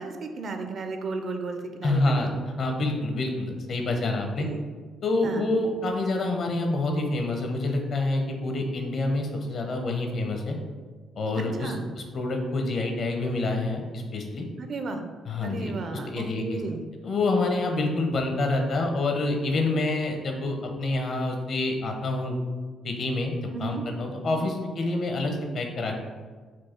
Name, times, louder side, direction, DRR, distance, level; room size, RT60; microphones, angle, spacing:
voice 1, 0.0-2.3 4.4-4.6 5.2-5.4 11.4-11.8 14.6-15.0 15.4-16.8 23.5-23.8 24.2-24.4, right 3 dB, 55° right, 6 dB, 0.5 m, -34 dB
voice 2, 1.8-4.5 5.0-10.6 11.2-14.5 15.3-16.6 17.0-22.4 22.8-25.9, left 2 dB, 55° left, 3 dB, 0.7 m, -27 dB
4.5 x 2.4 x 4.4 m, 1.4 s
cardioid pair, 90°, 0 cm